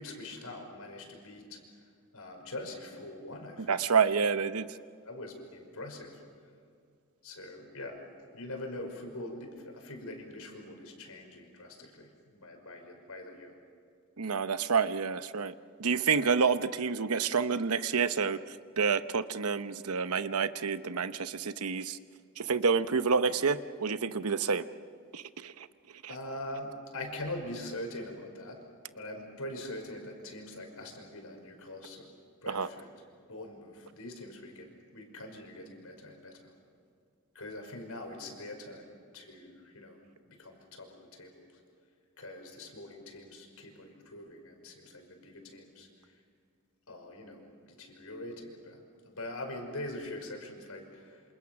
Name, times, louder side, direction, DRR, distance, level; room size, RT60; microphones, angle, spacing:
voice 1, 0.0-1.6 2.1-3.8 4.6-4.7 5.1-6.2 7.2-8.0 8.3-13.5 26.1-28.6 28.9-32.1 32.4-32.9 33.3-36.5 37.3-40.0 40.3-41.5 42.2-45.9 46.9-51.2, left 1 dB, 80° left, 3 dB, 5.4 m, -43 dB
voice 2, 3.7-4.7 14.2-15.5 15.8-22.0 22.4-24.6 25.1-25.7 26.0-26.1 32.5-32.7, right 5 dB, 90° right, 12 dB, 0.9 m, -29 dB
28.0 x 27.0 x 6.0 m, 2.3 s
head